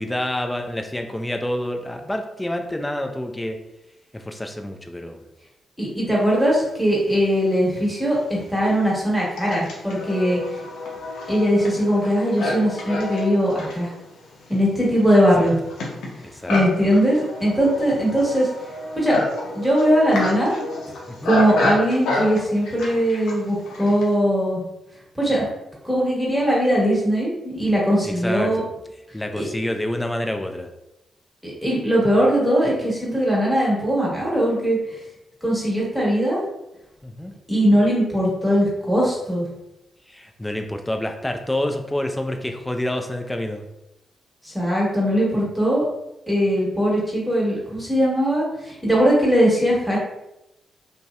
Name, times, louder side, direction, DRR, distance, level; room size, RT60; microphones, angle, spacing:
voice 1, 0.0-3.6 4.1-5.2 15.4-15.5 16.2-16.6 21.1-21.3 28.0-28.6 29.1-30.7 37.0-37.3 40.1-43.7, left 1 dB, 15° left, 4 dB, 0.4 m, -28 dB
voice 2, 5.8-10.5 11.3-13.9 14.5-15.5 16.5-18.5 18.9-19.2 19.5-20.6 21.2-24.6 25.1-25.4 25.8-28.6 29.4-29.5 31.4-34.8 35.4-36.4 37.5-39.4 44.4-45.8 46.3-50.0, equal, 5° right, -5 dB, 1.3 m, -20 dB
Livestock farm animals working animals, 7.4-7.5 8.2-24.1, left 2 dB, 80° left, 0.5 m, -29 dB
2.6 x 2.0 x 2.3 m, 0.90 s
supercardioid pair, 45°, 0 cm